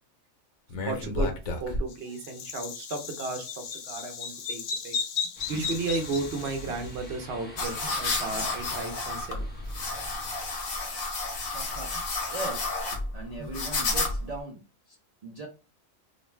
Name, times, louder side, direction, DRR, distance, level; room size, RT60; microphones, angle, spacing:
Bird vocalization bird call bird song, 0.7-7.0, left 4 dB, 80° left, 1.0 m, -34 dB
voice 1, 0.9-1.3 1.6-5.0 5.5-9.5, right 3 dB, 60° right, 5 dB, 0.7 m, -34 dB
sound 1, 5.3-10.3, equal, 15° left, 0.3 m, -44 dB
sound 2, 7.6-14.4, left 3 dB, 55° left, 0.8 m, -31 dB
voice 2, 11.5-12.7 13.1-14.6 14.9-15.0 15.2-15.5, right 3 dB, 85° right, -1 dB, 0.3 m, -39 dB
2.5 x 2.2 x 3.1 m, 0.30 s
omnidirectional pair, 1.4 m